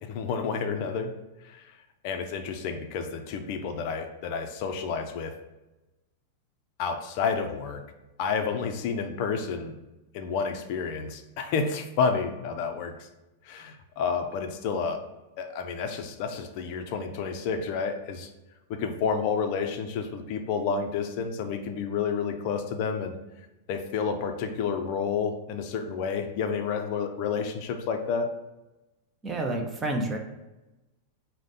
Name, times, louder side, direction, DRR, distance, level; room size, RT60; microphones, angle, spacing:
voice 1, 0.0-1.1 1.4-1.8 2.0-5.4 6.8-7.8 8.2-9.8 10.1-13.1 13.4-15.0 15.4-18.3 18.7-23.1 23.7-28.3, left 5 dB, 45° left, 6 dB, 0.4 m, -30 dB
voice 2, 29.2-30.2, right 2 dB, 15° right, 3 dB, 0.5 m, -29 dB
4.9 x 2.1 x 4.1 m, 1.0 s
supercardioid pair, 155°, 0 cm